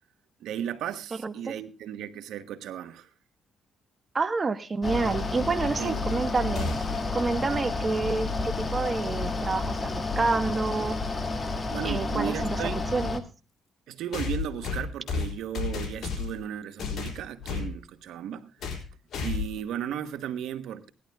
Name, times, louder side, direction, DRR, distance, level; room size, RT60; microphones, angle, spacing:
voice 1, 0.4-3.1 5.8-6.2 11.7-12.9 13.9-18.5 19.2-20.9, right 10 dB, 80° right, 1.1 m, -35 dB
voice 2, 1.2-1.5 4.1-6.7 7.1-9.9 10.2-11.0 11.8-12.6 12.9-13.2, right 4 dB, 30° right, 1.2 m, -28 dB
Mechanical fan, 4.8-13.2, left 3 dB, 25° left, 1.7 m, -30 dB
sound 1, 6.6-7.1 9.2-9.3 10.4-10.5 14.1-16.4 16.8-17.7 18.6-18.9 19.1-19.6, left 5 dB, 60° left, 4.3 m, -32 dB
17.0 x 11.5 x 3.5 m
cardioid pair, 90°, 0 cm